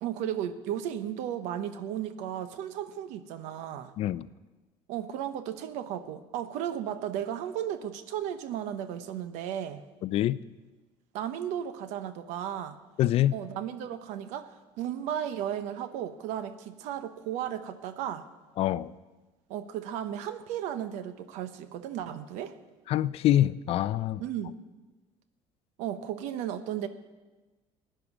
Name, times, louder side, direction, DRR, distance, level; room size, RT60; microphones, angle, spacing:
voice 1, 0.0-3.9 4.9-9.8 11.1-12.8 13.3-14.5 14.8-18.2 19.5-22.5 24.2-24.5 25.8-26.9, right 10 dB, 85° right, 1.0 m, -34 dB
voice 2, 4.0-4.3 10.0-10.4 13.0-13.3 18.6-18.9 22.9-24.2, left 13 dB, 55° left, 0.5 m, -25 dB
15.5 x 10.0 x 6.1 m
cardioid pair, 125°, 12 cm